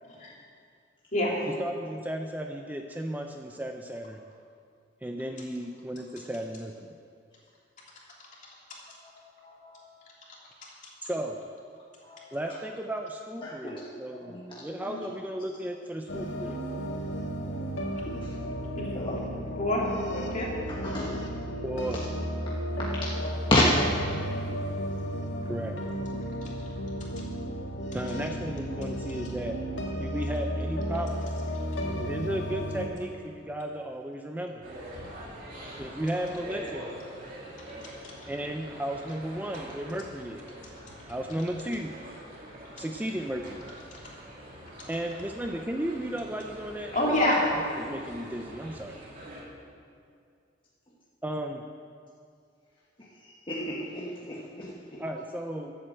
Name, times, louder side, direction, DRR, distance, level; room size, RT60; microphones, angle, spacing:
voice 1, 0.0-0.3 1.1-1.3 18.7-18.8 19.4-19.8 20.1-20.5 23.2-23.3 26.4-26.5 46.9-47.4, left 1 dB, 40° left, -4 dB, 2.9 m, -27 dB
voice 2, 1.6-4.2 5.0-6.9 11.1-11.4 12.3-16.6 21.6-22.0 25.5-25.8 27.9-29.6 30.0-31.3 31.8-34.6 35.8-36.8 38.3-40.5 41.1-41.9 42.8-43.6 44.9-46.9 47.8-49.0 51.2-51.6 55.0-55.8, right 1 dB, 10° right, 4 dB, 0.5 m, -34 dB
voice 3, 9.4-9.8 12.1-12.3 13.4-13.9 14.2-15.0 18.9-19.2 20.8-21.2 23.5-23.7 53.5-55.0, left 1 dB, 25° left, -5 dB, 1.3 m, -30 dB
sound 1, 16.1-32.9, equal, 85° left, 1.8 m, -33 dB
sound 2, 34.6-49.4, right 1 dB, 50° right, 2.9 m, -44 dB
12.0 x 7.9 x 7.7 m, 2.3 s
head